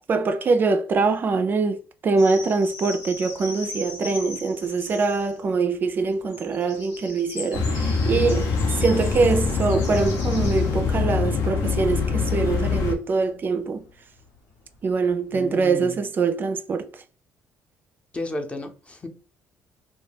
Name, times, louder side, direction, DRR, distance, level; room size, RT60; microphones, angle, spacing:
voice 1, 0.1-13.9 14.8-17.0, right 4 dB, 40° right, 0.3 m, -23 dB
sound 1, 2.2-5.5 6.1-13.9 14.2-15.5, left 2 dB, 90° left, 1.0 m, -40 dB
sound 2, 7.5-12.9, left 5 dB, 75° left, 0.6 m, -24 dB
voice 2, 15.3-16.0 18.1-19.1, left 2 dB, 20° left, 0.6 m, -33 dB
2.2 x 2.2 x 3.3 m
cardioid pair, 85°, 5 cm